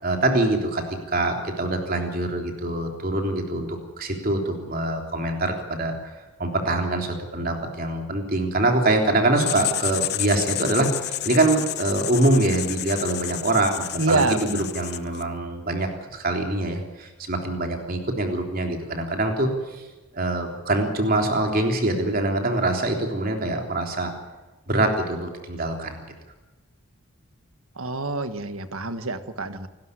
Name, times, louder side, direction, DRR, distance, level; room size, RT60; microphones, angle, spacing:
voice 1, 0.0-6.1 6.4-19.9 20.1-24.1 24.7-26.1, right 2 dB, 40° right, 3 dB, 3.5 m, -24 dB
Writing, 9.4-15.3, left 14 dB, 45° left, 0.6 m, -31 dB
voice 2, 14.0-14.7 27.8-29.7, right 3 dB, 70° right, 11 dB, 1.6 m, -26 dB
28.0 x 12.5 x 9.8 m, 1.2 s
head